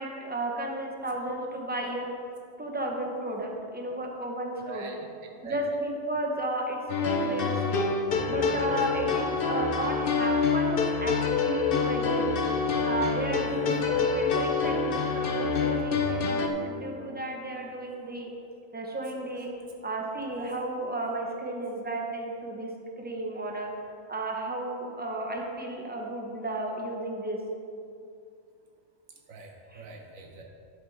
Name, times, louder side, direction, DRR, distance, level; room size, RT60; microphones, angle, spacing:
voice 1, 0.0-2.1 2.6-5.0 5.4-7.9 8.3-12.3 12.8-18.3 18.7-19.5 19.8-22.7 23.0-23.7 24.1-27.4 29.7-29.8, right 1 dB, 10° right, 0 dB, 0.8 m, -33 dB
voice 2, 4.6-5.6 13.5-13.7 29.3-30.4, right 4 dB, 80° right, 1 dB, 1.3 m, -44 dB
sound 1, 6.9-16.5, left 4 dB, 50° left, 0.8 m, -26 dB
11.5 x 5.1 x 4.6 m, 2.5 s
omnidirectional pair, 1.4 m